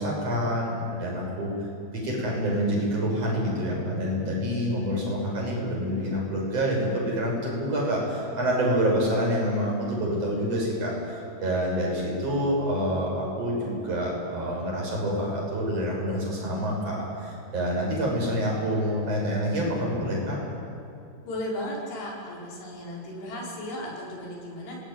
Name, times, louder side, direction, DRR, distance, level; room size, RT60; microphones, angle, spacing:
voice 1, 0.0-1.5 1.9-20.4, equal, 35° right, -2 dB, 7.5 m, -27 dB
voice 2, 21.3-24.8, left 1 dB, 90° left, -3 dB, 7.2 m, -35 dB
26.5 x 20.5 x 9.5 m, 2.5 s
omnidirectional pair, 4.7 m